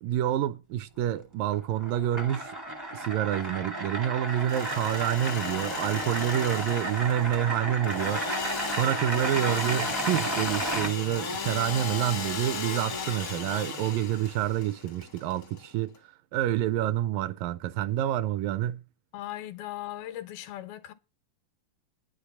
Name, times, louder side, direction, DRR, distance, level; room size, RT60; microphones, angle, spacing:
voice 1, 0.0-2.5 2.9-18.8, right 12 dB, 80° right, 2.2 m, -28 dB
sound 1, 1.4-10.9, right 2 dB, 35° right, 0.3 m, -33 dB
Engine / Sawing, 4.3-16.0, left 5 dB, 65° left, 0.9 m, -36 dB
voice 2, 19.1-20.9, left 14 dB, 90° left, 2.8 m, -38 dB
10.0 x 6.6 x 6.8 m
omnidirectional pair, 4.2 m